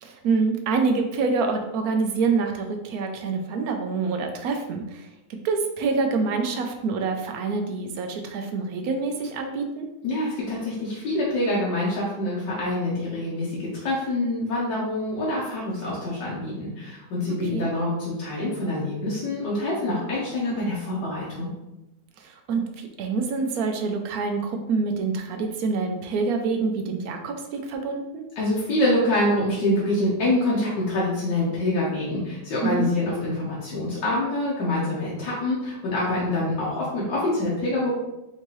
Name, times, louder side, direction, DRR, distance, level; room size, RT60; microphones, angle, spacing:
voice 1, 0.0-9.9 17.5-17.7 22.2-28.2 32.6-32.9, right 4 dB, 70° right, 4 dB, 0.9 m, -26 dB
voice 2, 10.0-21.5 28.4-37.9, left 1 dB, 80° left, -6 dB, 1.5 m, -26 dB
4.4 x 2.8 x 3.0 m, 0.95 s
omnidirectional pair, 1.9 m